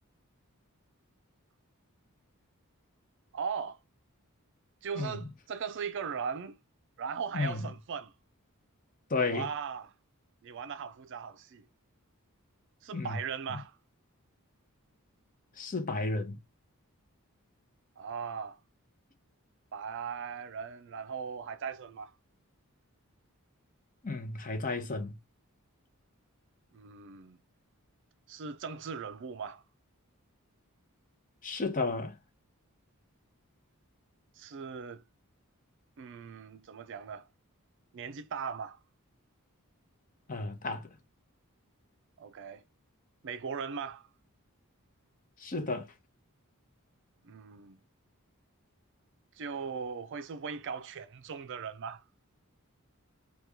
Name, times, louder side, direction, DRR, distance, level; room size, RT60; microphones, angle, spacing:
voice 1, 3.3-3.8 4.8-6.6 7.0-8.1 9.3-9.9 10.4-11.6 12.8-13.8 18.0-18.6 19.7-22.1 26.7-27.4 28.3-29.6 34.4-35.0 36.0-37.3 37.9-38.8 42.2-42.6 43.2-44.1 47.2-47.8 49.4-52.0, right 6 dB, 55° right, 0.4 m, -38 dB
voice 2, 4.9-5.3 7.3-7.7 9.1-9.5 12.9-13.2 13.5-13.6 15.6-16.4 24.0-25.2 31.4-32.2 40.3-40.9 45.4-45.9, left 3 dB, 35° left, 0.7 m, -33 dB
2.9 x 2.3 x 3.5 m
head